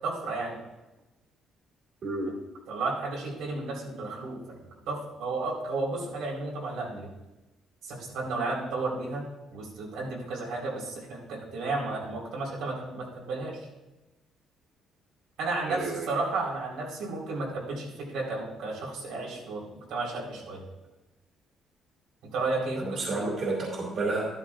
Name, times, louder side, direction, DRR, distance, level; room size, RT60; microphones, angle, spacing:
voice 1, 0.0-0.6 2.7-4.6 4.9-7.1 7.8-9.2 9.5-13.7 15.4-20.6 22.3-23.3, right 3 dB, 85° right, -3 dB, 4.2 m, -33 dB
voice 2, 15.6-16.1 22.8-24.3, right 3 dB, 40° right, -3 dB, 2.6 m, -30 dB
13.5 x 12.0 x 2.5 m, 1.0 s
cardioid pair, 155°, 0 cm